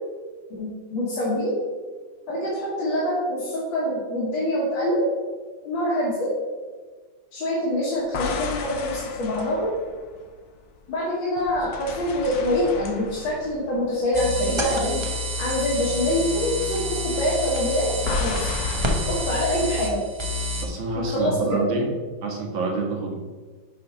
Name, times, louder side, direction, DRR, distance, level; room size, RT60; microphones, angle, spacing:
voice 1, 0.5-1.5 2.3-5.0 5.6-6.3 7.3-9.7 10.9-15.0 15.4-18.5 19.1-20.0 21.0-21.6, left 1 dB, 90° left, -6 dB, 2.2 m, -25 dB
sound 1, 8.0-10.9 11.4-14.8 15.1-15.3 18.1-19.7, left 4 dB, 65° left, 1.1 m, -34 dB
sound 2, 14.1-20.6, left 1 dB, 50° right, 0.3 m, -28 dB
voice 2, 20.6-21.9 22.2-23.1, right 3 dB, 90° right, 0 dB, 2.0 m, -27 dB
7.2 x 4.3 x 5.3 m, 1.4 s
omnidirectional pair, 2.0 m